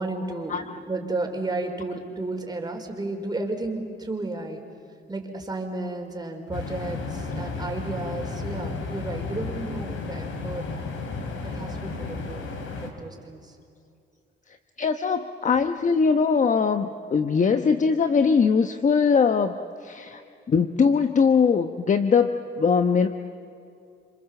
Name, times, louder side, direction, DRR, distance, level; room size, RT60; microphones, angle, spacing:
voice 1, 0.0-4.6 5.1-10.7 11.4-12.5 12.8-13.6, right 2 dB, 20° right, 2 dB, 4.9 m, -32 dB
sound 1, 6.5-12.9, left 3 dB, 80° left, 4.1 m, -33 dB
voice 2, 14.8-20.2 20.5-23.1, left 5 dB, 40° left, 8 dB, 1.1 m, -21 dB
29.0 x 26.5 x 7.7 m, 2.5 s
cardioid pair, 90°, 20 cm